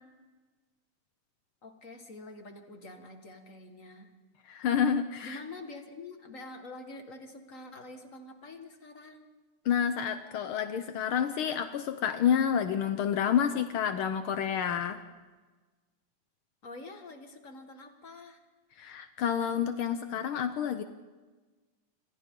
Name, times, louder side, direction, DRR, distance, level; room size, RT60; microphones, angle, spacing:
voice 1, 1.6-4.1 5.2-9.3 16.6-18.4, left 2 dB, 35° left, 5 dB, 1.5 m, -46 dB
voice 2, 4.5-5.4 9.6-15.0 18.8-20.8, left 8 dB, 85° left, 9 dB, 1.1 m, -29 dB
28.5 x 26.0 x 3.8 m, 1.3 s
omnidirectional pair, 3.6 m